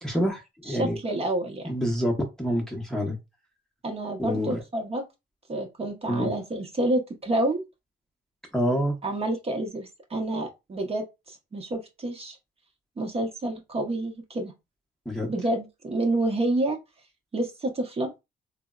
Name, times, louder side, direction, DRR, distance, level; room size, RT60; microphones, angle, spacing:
voice 1, 0.0-1.0 1.6-3.2 4.2-4.6 6.1-6.3 8.5-9.0 15.1-15.3, equal, 5° left, 0.7 m, -27 dB
voice 2, 0.7-1.7 3.8-5.0 5.5-7.6 9.0-12.4 13.0-14.5 15.3-16.8 17.3-18.1, right 1 dB, 30° right, 0.7 m, -28 dB
3.3 x 2.0 x 2.3 m
cardioid pair, 90°, 20 cm